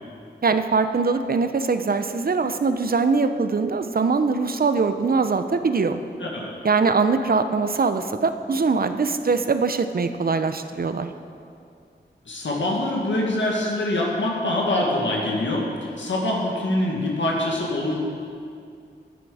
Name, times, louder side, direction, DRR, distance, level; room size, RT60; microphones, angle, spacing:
voice 1, 0.4-6.0 6.6-11.1, right 4 dB, 55° right, 9 dB, 0.6 m, -22 dB
voice 2, 6.2-6.5 12.3-17.9, left 1 dB, 90° left, -3 dB, 1.7 m, -24 dB
12.0 x 9.5 x 4.9 m, 2.4 s
wide cardioid pair, 70°, 19 cm